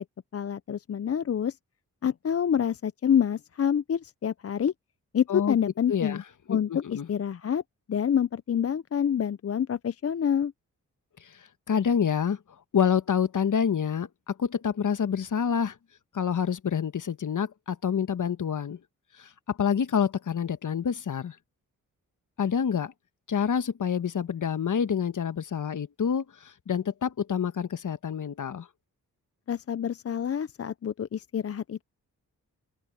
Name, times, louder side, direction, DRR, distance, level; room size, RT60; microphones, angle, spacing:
voice 1, 0.3-1.5 2.0-4.7 5.1-6.2 6.5-7.6 7.9-10.5 29.5-31.8, left 8 dB, 40° left, 0.6 m, -27 dB
voice 2, 5.9-6.2 6.5-7.1 11.7-12.4 12.7-15.7 16.1-18.8 19.2-21.3 22.4-22.9 23.3-28.7, left 7 dB, 60° left, 1.3 m, -27 dB
open air
supercardioid pair, 45°, 35 cm